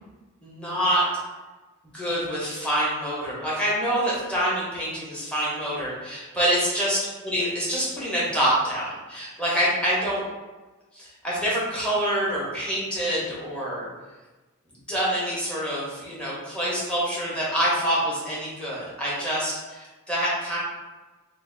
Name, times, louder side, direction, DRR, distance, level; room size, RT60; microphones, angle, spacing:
voice 1, 0.4-1.0 1.9-7.0 7.2-10.2 10.9-13.9 14.9-20.6, equal, 5° left, -7 dB, 0.9 m, -26 dB
2.7 x 2.4 x 3.7 m, 1.2 s
head